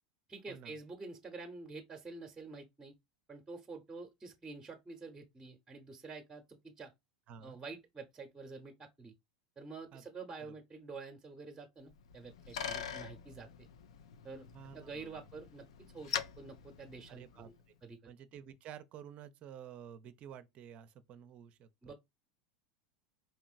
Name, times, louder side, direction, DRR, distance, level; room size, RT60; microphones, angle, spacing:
voice 1, 0.3-2.9 3.3-6.9 7.4-9.1 9.6-13.5 14.2-14.5 14.7-17.5 17.8-18.1 21.8-21.9, right 4 dB, 15° right, 0.8 m, -48 dB
Bicycle, 11.9-17.6, left 8 dB, 75° left, 0.4 m, -44 dB
voice 2, 14.5-15.2 17.1-17.5 18.0-21.9, right 8 dB, 45° right, 0.5 m, -51 dB
4.4 x 2.9 x 2.4 m
hypercardioid pair, 90°, 3 cm